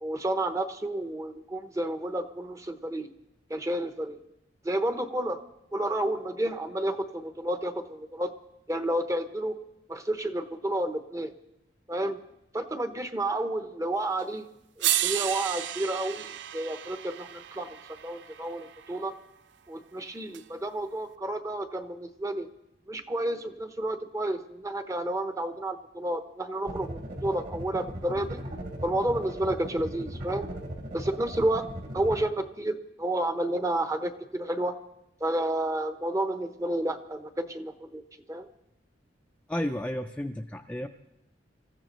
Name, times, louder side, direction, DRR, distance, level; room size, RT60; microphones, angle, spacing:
voice 1, 0.0-3.1 3.5-4.2 4.6-5.4 5.7-8.3 8.7-9.5 9.9-11.3 11.9-12.2 12.5-14.4 14.8-19.1 19.7-22.5 22.9-28.4 28.8-30.5 30.9-31.7 31.9-34.8 35.2-38.0 38.3-38.5, right 1 dB, 20° right, 8 dB, 0.9 m, -30 dB
sound 1, 14.2-14.3 14.8-19.0 20.3-20.4, right 12 dB, 70° right, 0.4 m, -32 dB
sound 2, 26.7-32.2, equal, 50° right, 3.2 m, -38 dB
voice 2, 39.5-40.9, left 1 dB, 5° left, 3 dB, 0.5 m, -32 dB
26.5 x 14.5 x 3.1 m, 0.86 s
head